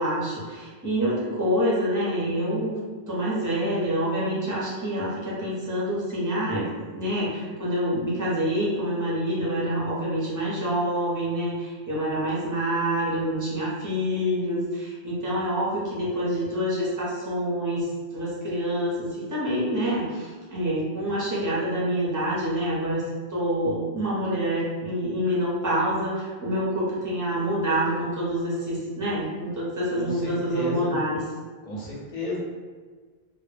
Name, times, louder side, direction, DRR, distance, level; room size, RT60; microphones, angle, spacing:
voice 1, 0.0-2.8 3.1-23.0 23.3-31.2, equal, 20° right, -7 dB, 0.6 m, -27 dB
voice 2, 29.9-30.9 31.6-32.4, left 1 dB, 45° left, -4 dB, 0.5 m, -33 dB
2.1 x 2.0 x 3.2 m, 1.5 s
omnidirectional pair, 1.1 m